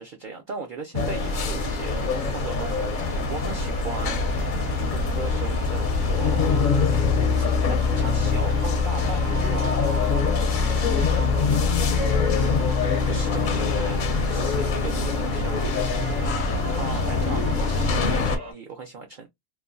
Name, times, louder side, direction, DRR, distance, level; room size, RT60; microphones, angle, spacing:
voice 1, 0.0-4.3 4.7-6.8 7.3-10.0 13.1-15.8 16.7-19.3, right 4 dB, 60° right, 0.5 m, -38 dB
sound 1, 0.9-18.4, left 4 dB, 55° left, 0.6 m, -23 dB
sound 2, 1.2-18.5, right 2 dB, 90° right, 1.4 m, -38 dB
voice 2, 10.5-12.4 17.0-17.5, right 1 dB, 10° right, 0.5 m, -40 dB
3.1 x 2.2 x 2.4 m
omnidirectional pair, 1.3 m